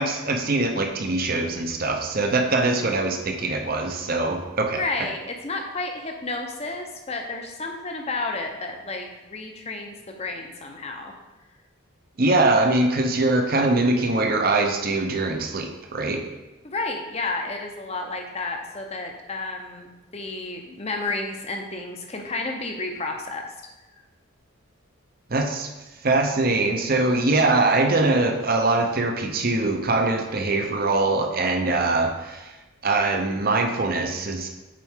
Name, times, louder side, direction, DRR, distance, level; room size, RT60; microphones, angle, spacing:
voice 1, 0.0-5.1 12.2-16.2 25.3-25.7 26.0-32.5 32.8-34.5, right 2 dB, 45° right, 4 dB, 0.7 m, -22 dB
voice 2, 4.7-11.1 16.6-23.4, left 3 dB, 30° left, 3 dB, 0.7 m, -31 dB
7.5 x 4.6 x 3.6 m, 1.1 s
head